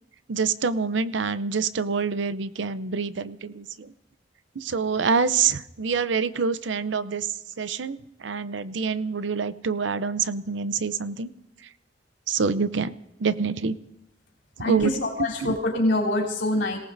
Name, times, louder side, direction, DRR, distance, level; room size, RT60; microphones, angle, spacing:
voice 1, 0.3-3.9 4.6-7.3 7.6-11.3 12.3-12.9 13.2-13.8 14.6-14.9 15.2-15.6, right 5 dB, 85° right, 14 dB, 0.6 m, -26 dB
voice 2, 14.6-16.8, left 1 dB, 85° left, -3 dB, 3.5 m, -24 dB
28.0 x 18.0 x 2.7 m, 0.86 s
head